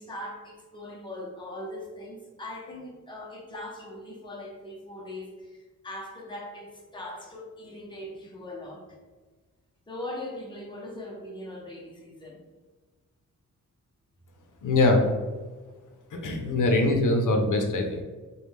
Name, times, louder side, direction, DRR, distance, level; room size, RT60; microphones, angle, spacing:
voice 1, 0.0-9.0 9.9-12.4, left 1 dB, 15° left, -2 dB, 0.8 m, -40 dB
voice 2, 14.6-15.1 16.1-18.0, left 2 dB, 80° left, 3 dB, 0.7 m, -23 dB
5.0 x 2.3 x 3.3 m, 1.4 s
wide cardioid pair, 130°, 30 cm